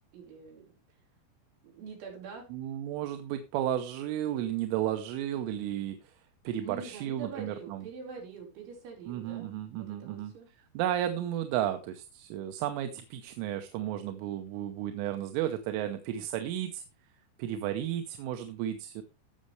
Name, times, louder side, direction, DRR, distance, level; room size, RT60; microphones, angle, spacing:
voice 1, 0.1-0.8 1.6-2.5 6.6-10.5, right 5 dB, 70° right, -3 dB, 6.8 m, -45 dB
voice 2, 2.5-6.2 6.4-7.9 9.1-10.3 10.7-16.8 17.4-19.0, right 11 dB, 90° right, 7 dB, 3.4 m, -33 dB
18.0 x 6.5 x 3.2 m, 0.30 s
omnidirectional pair, 5.5 m